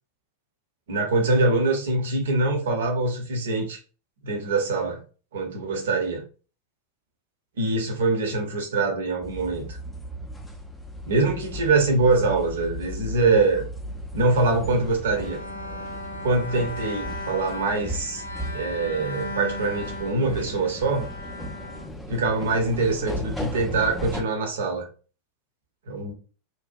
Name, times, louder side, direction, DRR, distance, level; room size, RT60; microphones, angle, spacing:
voice 1, 0.9-3.8 4.2-5.0 5.3-6.2 7.6-9.8 11.1-13.6 14.1-15.4 16.2-18.2 18.5-21.1 22.1-24.9 25.9-26.1, right 3 dB, 60° right, 2 dB, 0.7 m, -24 dB
sound 1, 9.2-24.2, equal, 10° left, 0.4 m, -36 dB
Bowed string instrument, 15.2-22.5, left 1 dB, 85° left, 0.4 m, -37 dB
2.7 x 2.1 x 2.5 m, 0.37 s
figure-of-eight pair, 90°, 0 cm